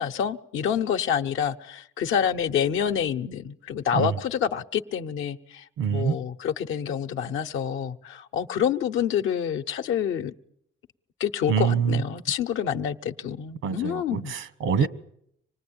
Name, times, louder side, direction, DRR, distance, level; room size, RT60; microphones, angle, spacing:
voice 1, 0.0-10.3 11.2-14.3 14.8-14.9, left 8 dB, 80° left, 0.9 m, -27 dB
voice 2, 5.8-6.2 11.5-12.0 13.6-14.9, right 7 dB, 85° right, 1.2 m, -25 dB
26.0 x 19.5 x 8.8 m
cardioid pair, 90°, 20 cm